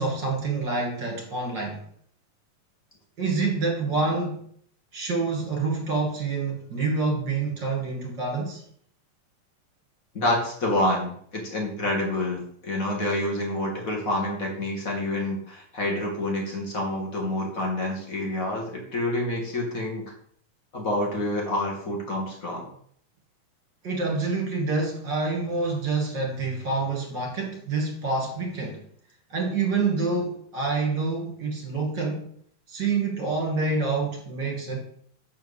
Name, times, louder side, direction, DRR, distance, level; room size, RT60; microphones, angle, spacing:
voice 1, 0.0-1.8 3.2-4.4 4.9-8.6 23.8-28.9 29.3-32.3 32.7-34.8, right 3 dB, 35° right, -1 dB, 2.7 m, -27 dB
voice 2, 10.1-20.1 20.7-22.7, left 1 dB, 30° left, -1 dB, 2.0 m, -28 dB
8.1 x 4.6 x 7.1 m, 0.63 s
omnidirectional pair, 4.1 m